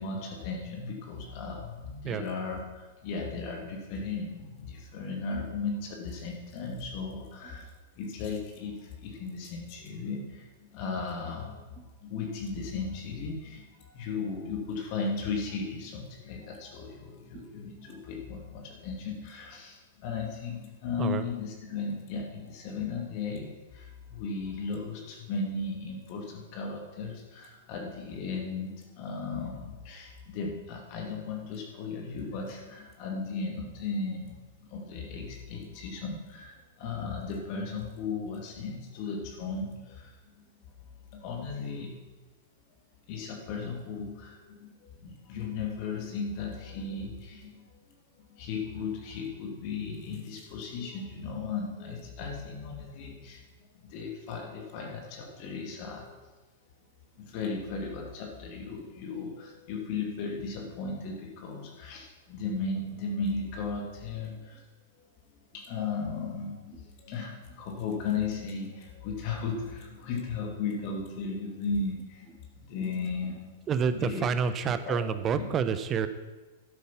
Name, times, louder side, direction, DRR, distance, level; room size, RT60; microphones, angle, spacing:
voice 1, 0.0-7.7 8.0-40.4 41.1-41.9 43.1-47.8 48.3-53.4 53.9-56.2 57.1-64.6 65.5-73.6 74.0-74.3 74.9-75.0, left 4 dB, 45° left, 1 dB, 2.5 m, -36 dB
voice 2, 73.7-76.1, right 6 dB, 25° right, 11 dB, 0.9 m, -29 dB
12.5 x 8.4 x 5.9 m, 1.2 s
figure-of-eight pair, 105°, 0 cm